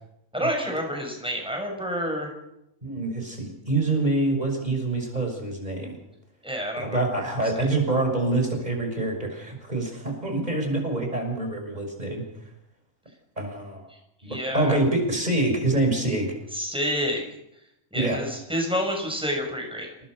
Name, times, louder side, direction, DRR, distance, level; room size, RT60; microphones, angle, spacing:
voice 1, 0.3-2.3 6.4-7.0 7.6-7.7 14.2-14.8 16.5-17.2 17.9-19.9, equal, 5° right, 2 dB, 6.7 m, -28 dB
voice 2, 2.8-6.0 6.8-12.2 13.4-13.8 14.2-16.3 17.9-18.2, right 2 dB, 30° right, 3 dB, 6.2 m, -26 dB
29.0 x 19.5 x 6.5 m, 0.84 s
omnidirectional pair, 1.4 m